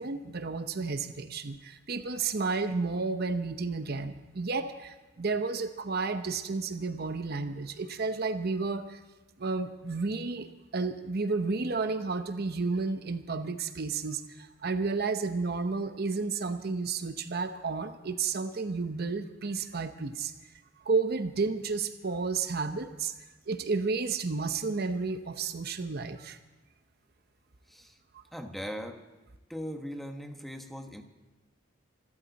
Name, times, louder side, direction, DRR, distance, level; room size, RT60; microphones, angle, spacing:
voice 1, 0.0-9.0 9.4-20.3 20.8-23.1 23.5-26.4 28.1-28.2, right 4 dB, 55° right, 9 dB, 0.8 m, -32 dB
voice 2, 28.3-29.0 29.5-31.0, equal, ahead, 4 dB, 1.3 m, -39 dB
26.5 x 13.0 x 4.1 m, 1.1 s
head